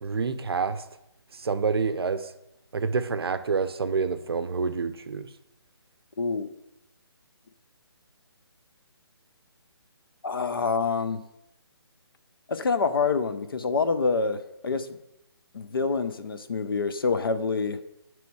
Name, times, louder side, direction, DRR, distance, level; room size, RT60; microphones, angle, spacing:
voice 1, 0.0-0.8 1.3-2.3 2.7-5.3, right 5 dB, 65° right, 10 dB, 0.5 m, -27 dB
voice 2, 6.2-6.5 10.2-11.2 12.5-14.9 15.5-17.8, left 4 dB, 60° left, 10 dB, 0.5 m, -26 dB
7.8 x 3.1 x 4.6 m, 0.85 s
hypercardioid pair, 175°, 14 cm